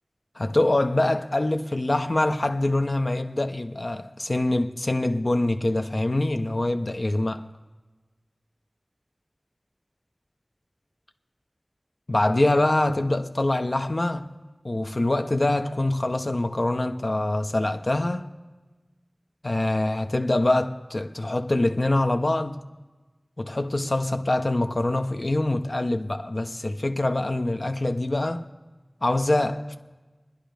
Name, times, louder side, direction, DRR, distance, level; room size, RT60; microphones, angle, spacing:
voice 1, 0.4-7.5 12.1-14.3 14.6-18.3 19.4-22.6 23.4-28.5 29.0-29.8, left 2 dB, 65° left, 0.8 m, -24 dB
28.5 x 10.5 x 3.4 m
wide cardioid pair, 40°, 0 cm